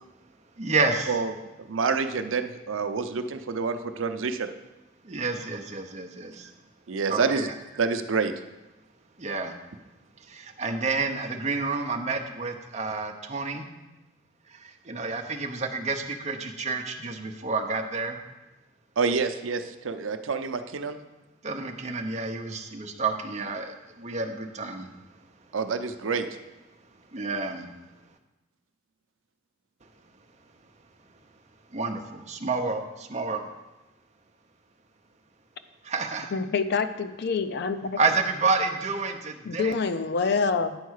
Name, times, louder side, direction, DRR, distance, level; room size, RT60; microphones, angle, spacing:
voice 1, 0.6-1.2 5.0-6.5 7.1-7.5 9.2-9.5 10.3-13.7 14.5-18.2 21.4-24.9 27.1-27.7 31.7-33.5 35.8-36.3 38.0-39.7, right 4 dB, 35° right, 4 dB, 0.8 m, -29 dB
voice 2, 1.7-4.5 6.9-7.5 7.8-8.3 19.0-21.0 25.5-26.3, right 5 dB, 85° right, 8 dB, 0.6 m, -27 dB
voice 3, 36.3-38.0 39.4-40.8, left 4 dB, 55° left, 10 dB, 0.5 m, -26 dB
9.6 x 4.6 x 6.4 m, 1.0 s
head